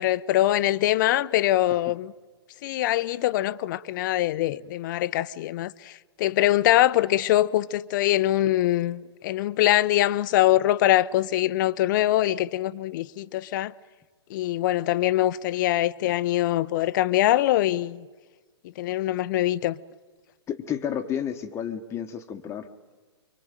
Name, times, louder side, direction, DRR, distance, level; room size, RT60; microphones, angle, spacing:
voice 1, 0.0-2.1 2.6-13.7 14.3-18.1 18.8-19.8, left 14 dB, 45° left, 0.8 m, -23 dB
voice 2, 20.5-22.7, left 9 dB, 20° left, 1.2 m, -31 dB
25.5 x 24.0 x 9.1 m
hypercardioid pair, 130°, 14 cm